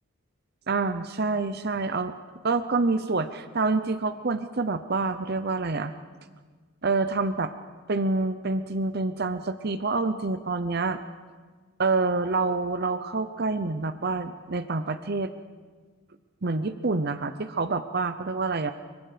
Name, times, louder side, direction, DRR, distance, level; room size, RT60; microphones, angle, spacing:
voice 1, 0.7-2.1 2.4-5.9 6.8-7.5 7.9-11.0 11.8-15.3 16.4-18.7, right 3 dB, 45° right, 11 dB, 0.7 m, -27 dB
25.0 x 23.5 x 5.1 m, 1.5 s
head